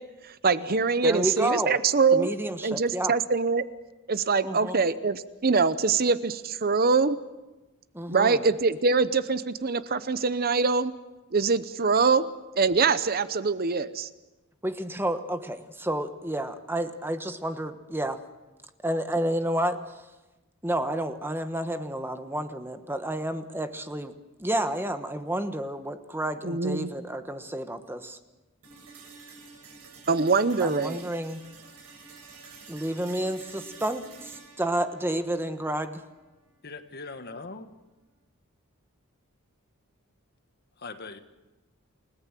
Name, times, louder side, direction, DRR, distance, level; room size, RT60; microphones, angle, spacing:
voice 1, 0.2-2.3 2.6-3.6 4.1-7.2 8.1-10.9 11.3-12.2 12.6-14.1 26.4-26.9 30.1-31.1, right 4 dB, 45° right, 0.8 m, -24 dB
voice 2, 1.0-1.8 2.1-3.1 4.4-4.8 7.9-8.4 14.6-18.2 18.8-20.0 20.6-24.1 24.4-28.2 30.6-31.4 32.7-36.0, right 1 dB, 10° right, 1.2 m, -30 dB
sound 1, 28.6-36.6, right 4 dB, 85° right, 6.8 m, -49 dB
voice 3, 36.6-37.7 40.8-41.2, left 3 dB, 50° left, 1.6 m, -40 dB
29.5 x 18.0 x 7.6 m
head